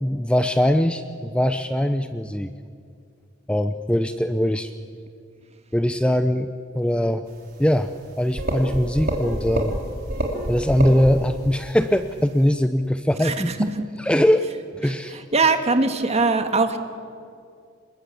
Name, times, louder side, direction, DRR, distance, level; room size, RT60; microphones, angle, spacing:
voice 1, 0.0-2.5 3.5-4.7 5.7-7.3 7.6-7.9 8.2-9.7 10.5-13.7 14.0-14.5 14.7-15.2, equal, 5° left, 9 dB, 0.6 m, -21 dB
sound 1, 8.1-8.2 8.4-9.8 10.1-11.2, right 1 dB, 50° right, 3.5 m, -26 dB
voice 2, 15.3-16.8, right 3 dB, 35° right, 7 dB, 1.9 m, -20 dB
27.0 x 21.0 x 8.5 m, 2.3 s
head